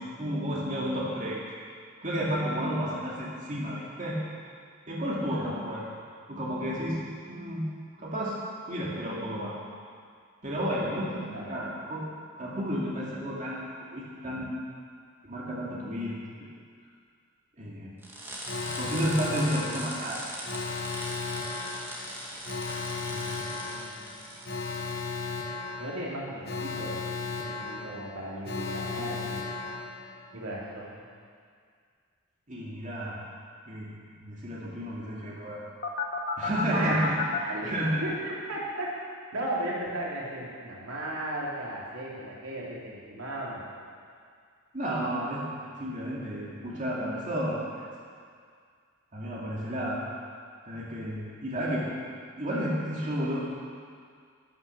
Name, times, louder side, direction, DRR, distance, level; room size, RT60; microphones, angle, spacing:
voice 1, 0.0-1.4 2.0-4.2 4.9-5.8 6.3-7.6 8.0-9.5 10.4-12.0 12.4-14.5 15.2-16.2 17.6-17.9 18.8-20.2 23.1-23.4 32.5-33.2 33.7-33.9 34.2-35.6 36.4-37.1 37.6-38.0 44.7-45.4 45.8-47.8 49.1-50.0 50.7-51.9 52.4-53.4, equal, 35° right, -6 dB, 2.2 m, -32 dB
voice 2, 5.3-5.7 11.3-11.7 23.6-24.2 25.8-27.0 27.4-29.6 30.3-31.0 36.7-37.0 37.4-37.7 38.0-38.9 39.3-43.6, right 1 dB, 85° right, -5 dB, 3.2 m, -36 dB
sound 1, 18.0-25.2, equal, 10° right, 2.1 m, -40 dB
Alarm, 18.5-30.4 35.8-37.4, left 4 dB, 50° left, 1.3 m, -35 dB
12.5 x 9.9 x 7.0 m, 2.1 s
head